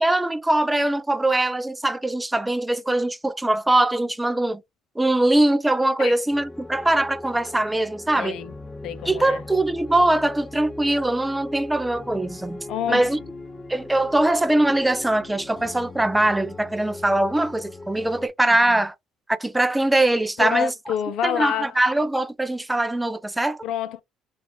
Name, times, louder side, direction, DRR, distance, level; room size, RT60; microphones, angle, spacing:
voice 1, 0.0-4.6 5.0-8.4 9.1-13.2 13.7-18.9 19.3-20.7 21.2-23.6, right 1 dB, 10° right, 0.4 m, -22 dB
sound 1, 6.3-18.3, left 2 dB, 20° left, 0.7 m, -39 dB
voice 2, 8.2-8.5 8.8-9.4 12.7-13.1 18.5-18.8 20.4-21.8 23.6-24.0, left 10 dB, 65° left, 0.5 m, -28 dB
3.9 x 2.4 x 2.9 m
cardioid pair, 115°, 0 cm